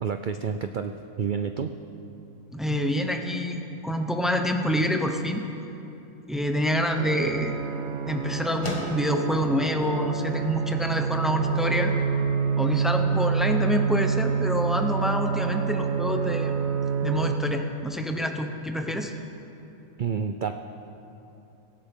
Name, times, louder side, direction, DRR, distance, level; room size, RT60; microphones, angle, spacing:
voice 1, 0.0-1.7 20.0-20.5, right 6 dB, 90° right, 7 dB, 0.4 m, -29 dB
voice 2, 2.5-5.5 6.3-7.5 8.1-11.9 12.6-16.5 17.0-19.1, equal, ahead, 4 dB, 0.5 m, -27 dB
sound 1, 6.6-16.4, left 1 dB, 20° left, 1.6 m, -44 dB
sound 2, 7.0-17.4, right 6 dB, 55° right, 1.0 m, -27 dB
18.0 x 15.5 x 3.7 m, 2.9 s
omnidirectional pair, 1.5 m